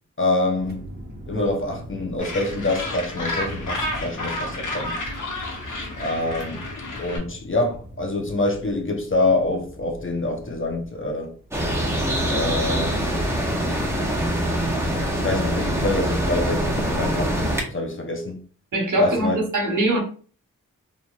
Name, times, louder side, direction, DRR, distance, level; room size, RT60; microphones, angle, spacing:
voice 1, 0.2-0.8 1.3-5.0 6.0-6.6 7.0-11.3 12.3-13.2 15.2-17.3 17.7-18.4 19.0-19.4, left 2 dB, 40° left, 0.7 m, -25 dB
sound 1, 0.6-13.9, equal, 30° right, 0.9 m, -41 dB
Gull seagull, 2.2-7.2, left 2 dB, 70° left, 0.8 m, -31 dB
sound 2, 11.5-17.6, equal, 10° right, 0.8 m, -24 dB
voice 2, 18.7-20.0, right 1 dB, 65° right, 1.1 m, -22 dB
3.0 x 2.6 x 2.3 m
cardioid pair, 50°, 33 cm